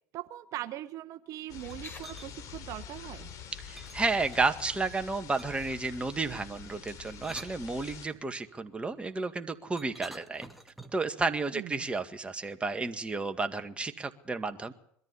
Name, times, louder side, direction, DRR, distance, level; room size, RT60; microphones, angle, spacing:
voice 1, 0.1-3.3 11.5-11.9, right 14 dB, 55° right, 8 dB, 0.9 m, -41 dB
sound 1, 1.5-8.1, left 8 dB, 55° left, 3.1 m, -46 dB
sound 2, 1.5-2.0 3.8-3.9 4.3-4.8 5.8-6.7, left 5 dB, 30° left, 4.8 m, -51 dB
sound 3, 1.6-2.3 3.8-4.7 5.4-5.8 6.9-8.2 9.8-11.1, right 1 dB, ahead, 1.8 m, -49 dB
voice 2, 3.6-10.4 10.9-14.7, right 3 dB, 15° right, 7 dB, 1.9 m, -32 dB
22.0 x 13.5 x 9.8 m, 0.69 s
hypercardioid pair, 90°, 7 cm